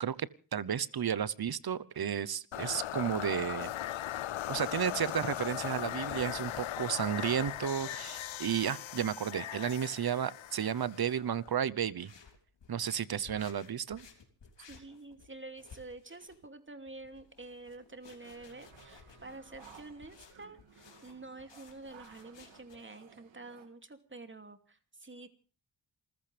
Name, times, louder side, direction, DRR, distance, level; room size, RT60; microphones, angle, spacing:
voice 1, 0.0-3.7 4.5-12.1 12.7-14.1, right 8 dB, 55° right, 20 dB, 1.0 m, -33 dB
sound 1, 2.5-11.5, left 13 dB, 85° left, 0.7 m, -39 dB
sound 2, 3.8-22.8, left 5 dB, 70° left, 3.5 m, -58 dB
voice 2, 14.7-25.3, right 2 dB, 25° right, 7 dB, 2.8 m, -48 dB
sound 3, 18.2-23.7, right 7 dB, 85° right, 2.5 m, -58 dB
28.0 x 15.0 x 3.5 m, 0.37 s
cardioid pair, 70°, 45 cm